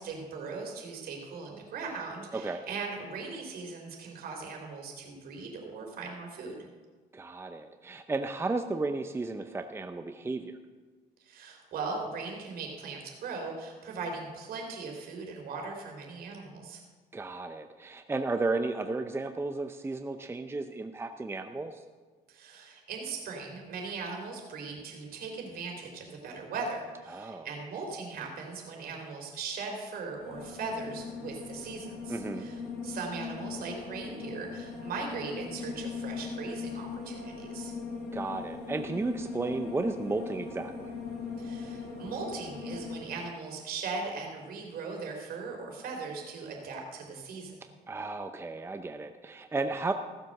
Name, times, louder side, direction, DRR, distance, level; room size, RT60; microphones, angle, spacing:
voice 1, 0.0-6.7 11.2-16.8 22.3-37.7 41.4-47.6, right 4 dB, 65° right, 1 dB, 3.6 m, -39 dB
voice 2, 2.3-2.6 7.1-10.6 17.1-21.8 27.1-27.5 32.1-32.5 38.1-40.9 47.9-49.9, right 3 dB, 15° right, 7 dB, 0.6 m, -33 dB
sound 1, 30.2-43.0, left 4 dB, 75° left, 4.3 m, -40 dB
15.5 x 7.4 x 6.6 m, 1.4 s
cardioid pair, 110°, 17 cm